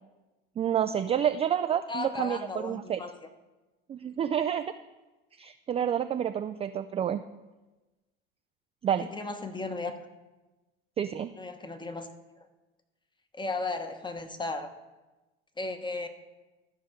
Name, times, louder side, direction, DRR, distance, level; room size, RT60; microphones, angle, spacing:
voice 1, 0.6-3.0 3.9-4.6 5.4-7.2 8.8-9.1 11.0-11.3, right 9 dB, 20° right, 9 dB, 0.3 m, -29 dB
voice 2, 1.9-3.1 9.0-10.0 11.4-12.1 13.3-14.7 15.6-16.1, left 3 dB, 15° left, 8 dB, 1.1 m, -35 dB
13.0 x 5.3 x 5.0 m, 1.1 s
hypercardioid pair, 85°, 30 cm